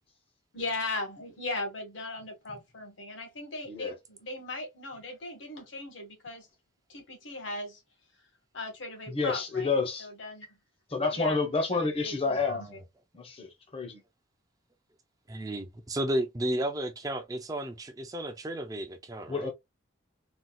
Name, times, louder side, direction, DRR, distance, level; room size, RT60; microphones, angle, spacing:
voice 1, 0.5-6.5 6.9-7.8 8.5-10.5 11.1-11.4 11.7-12.8, left 2 dB, 80° left, 1.4 m, -38 dB
voice 2, 9.1-10.1 10.9-12.6 13.1-14.0 19.3-19.5, left 4 dB, 30° left, 0.7 m, -29 dB
voice 3, 15.3-19.5, right 1 dB, 20° right, 0.4 m, -33 dB
4.1 x 2.3 x 2.2 m
head